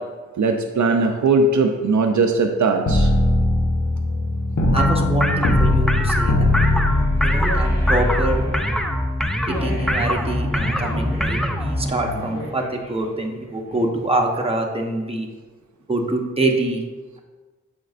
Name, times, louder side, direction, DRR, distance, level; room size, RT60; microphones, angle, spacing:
voice 1, 0.4-3.1, right 3 dB, 65° right, 4 dB, 0.5 m, -19 dB
sound 1, 2.9-8.4, left 1 dB, 65° left, 0.9 m, -20 dB
voice 2, 4.7-6.6 7.2-8.5 9.5-15.3 15.9-16.8, right 2 dB, 20° right, 1 dB, 0.8 m, -25 dB
sound 2, 4.8-11.9, equal, ahead, 0.4 m, -23 dB
sound 3, 5.1-14.2, equal, 40° left, 1.8 m, -33 dB
7.6 x 5.1 x 2.5 m, 1.3 s
wide cardioid pair, 55°, 31 cm